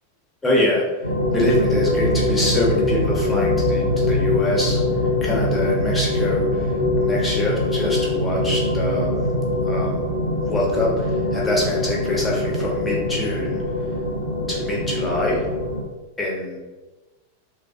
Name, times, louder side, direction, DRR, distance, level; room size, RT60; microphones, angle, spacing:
voice 1, 0.4-0.8 1.3-4.8 5.2-6.7 7.0-9.1 9.7-10.0 10.5-13.6 14.5-15.4 16.2-16.6, left 1 dB, 10° left, -4 dB, 0.9 m, -24 dB
sound 1, 1.0-15.8, left 1 dB, 80° left, 0.5 m, -22 dB
3.1 x 2.4 x 2.5 m, 1.2 s
figure-of-eight pair, 90°, 0 cm